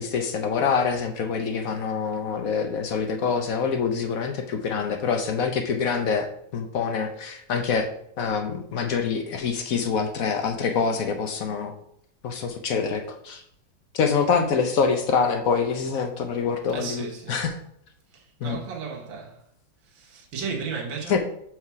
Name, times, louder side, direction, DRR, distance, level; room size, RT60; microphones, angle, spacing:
voice 1, 0.0-7.9 8.2-11.7 12.2-13.4 13.9-17.6 18.4-18.6 21.1-21.2, left 5 dB, 65° left, 0.9 m, -25 dB
voice 2, 16.7-17.5 18.1-19.4 19.9-21.2, right 5 dB, 75° right, 2.0 m, -34 dB
5.7 x 4.8 x 4.6 m
omnidirectional pair, 2.2 m